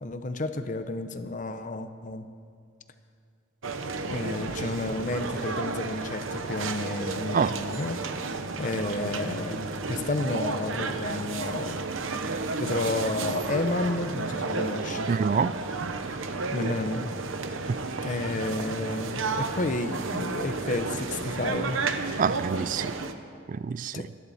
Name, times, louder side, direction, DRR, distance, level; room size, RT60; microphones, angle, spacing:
voice 1, 0.0-2.3 4.1-8.0 8.6-11.8 12.6-15.1 16.5-17.1 18.0-21.8 23.9-24.0, left 2 dB, 40° left, 0.7 m, -31 dB
sound 1, 3.6-23.1, right 3 dB, 90° right, 0.9 m, -32 dB
voice 2, 15.1-15.6 22.2-23.0 23.5-24.1, right 6 dB, 40° right, 0.3 m, -26 dB
24.0 x 11.0 x 4.2 m
head